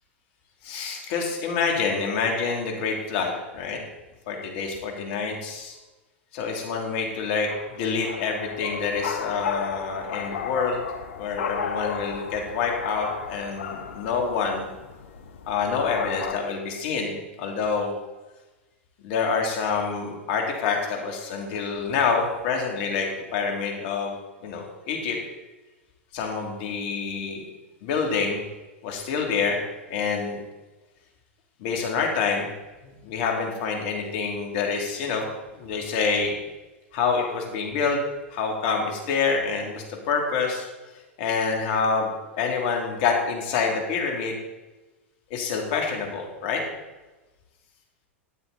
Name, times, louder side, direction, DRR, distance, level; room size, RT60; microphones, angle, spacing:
voice 1, 0.6-3.8 4.3-5.8 6.3-10.8 11.2-14.7 15.5-17.9 19.0-25.2 26.1-27.4 27.8-28.4 28.8-29.6 29.9-30.4 31.6-32.5 32.8-35.3 35.5-36.3 36.9-38.0 38.3-40.7 41.2-44.4 45.3-46.6, left 5 dB, 60° left, 1 dB, 3.0 m, -27 dB
sound 1, 7.5-16.4, left 6 dB, 75° left, 1.1 m, -34 dB
12.5 x 9.1 x 4.2 m, 1.1 s
hypercardioid pair, 100°, 7 cm